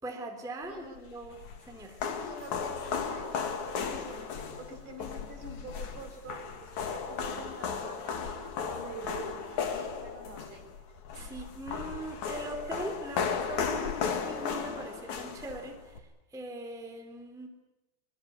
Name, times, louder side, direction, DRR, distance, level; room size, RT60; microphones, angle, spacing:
voice 1, 0.0-2.0 11.1-17.5, right 1 dB, ahead, 4 dB, 3.0 m, -41 dB
voice 2, 0.6-1.0 2.2-10.7, right 3 dB, 50° right, 5 dB, 6.8 m, -46 dB
sound 1, 1.0-16.0, left 6 dB, 50° left, 3.2 m, -35 dB
25.5 x 23.5 x 8.3 m, 0.98 s
omnidirectional pair, 4.7 m